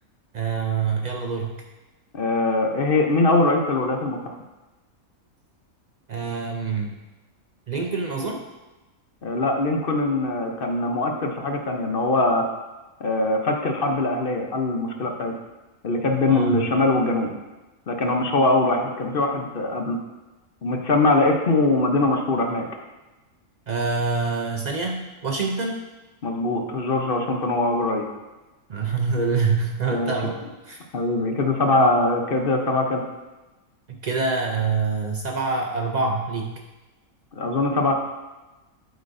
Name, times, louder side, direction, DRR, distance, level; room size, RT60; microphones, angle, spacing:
voice 1, 0.3-1.6 6.1-7.0 7.7-8.4 16.3-16.6 23.7-25.8 28.7-30.4 30.6-30.8 33.9-36.6, right 4 dB, 80° right, 1 dB, 0.4 m, -26 dB
voice 2, 2.1-4.2 9.2-12.4 13.0-15.4 15.8-17.3 17.9-20.0 20.6-22.7 26.2-28.0 29.9-30.1 30.9-33.0 37.3-38.0, left 2 dB, 45° left, 3 dB, 0.8 m, -22 dB
8.2 x 8.0 x 2.6 m, 1.1 s
omnidirectional pair, 1.5 m